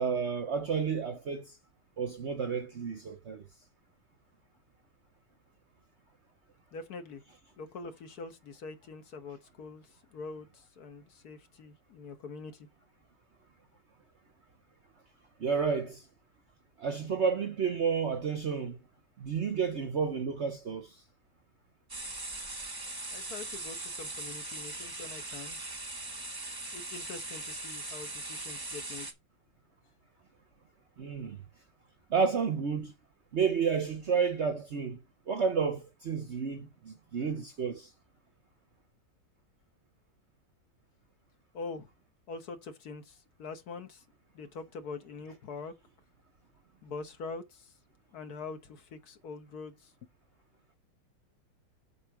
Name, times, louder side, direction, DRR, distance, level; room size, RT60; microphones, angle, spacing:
voice 1, 0.0-1.6 2.0-3.4 15.4-16.1 16.8-18.8 19.2-21.0 31.0-31.4 32.1-32.9 33.3-35.0 35.3-37.9, right 6 dB, 55° right, 0.8 m, -31 dB
voice 2, 6.7-7.2 7.6-12.7 23.1-25.6 26.7-29.1 41.5-41.9 42.3-44.0 44.3-45.7 46.8-47.7 48.1-49.9, left 4 dB, 60° left, 1.5 m, -44 dB
sound 1, 21.9-29.1, right 2 dB, 15° right, 1.0 m, -40 dB
8.1 x 4.4 x 4.7 m
omnidirectional pair, 2.0 m